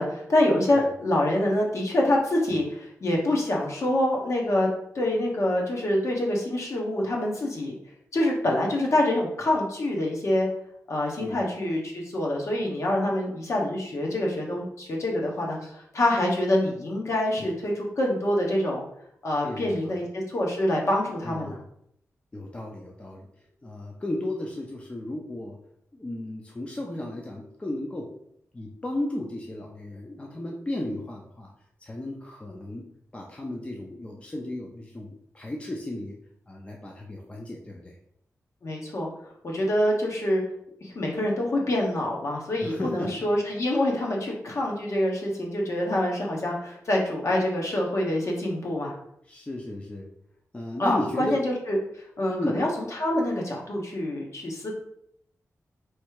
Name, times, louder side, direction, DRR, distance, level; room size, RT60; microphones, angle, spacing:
voice 1, 0.0-4.7 4.9-7.7 8.1-10.5 10.9-18.9 19.2-21.6 38.6-39.1 39.4-40.4 40.8-48.9 50.8-51.8 52.2-54.7, left 1 dB, 55° left, -1 dB, 1.1 m, -26 dB
voice 2, 19.4-20.0 21.2-21.6 22.3-23.3 23.6-25.6 25.9-28.1 28.5-31.5 31.8-32.8 33.1-36.1 36.5-38.0 42.6-43.1 49.3-50.1 50.5-51.4 52.3-52.6, left 1 dB, 20° left, 0 dB, 0.5 m, -34 dB
3.3 x 3.2 x 4.7 m, 0.73 s
wide cardioid pair, 130°, 6 cm